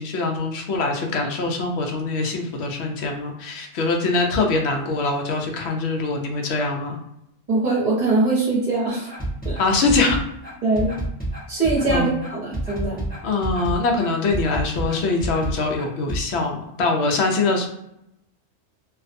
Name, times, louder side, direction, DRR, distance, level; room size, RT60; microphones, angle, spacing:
voice 1, 0.0-7.0 9.6-10.2 11.9-12.1 13.2-17.7, left 3 dB, 65° left, 2 dB, 0.8 m, -23 dB
voice 2, 7.5-9.2 9.4-9.6 10.6-10.9 11.5-13.0, right 3 dB, 35° right, -6 dB, 0.9 m, -22 dB
sound 1, 9.1-16.2, right 1 dB, 10° left, 0.6 m, -28 dB
2.5 x 2.2 x 2.5 m, 0.81 s
omnidirectional pair, 1.3 m